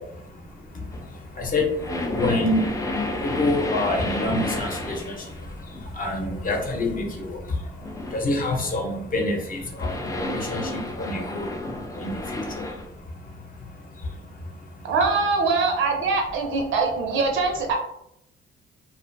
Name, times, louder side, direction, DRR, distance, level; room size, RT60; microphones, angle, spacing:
voice 1, 0.2-14.9, left 2 dB, 45° left, 1 dB, 0.8 m, -28 dB
sound 1, 0.9-8.4 8.7-8.9 9.6-12.9, left 2 dB, 15° left, 0.4 m, -32 dB
voice 2, 14.8-17.8, right 4 dB, 80° right, 2 dB, 0.7 m, -23 dB
2.5 x 2.4 x 2.6 m, 0.78 s
cardioid pair, 90°, 20 cm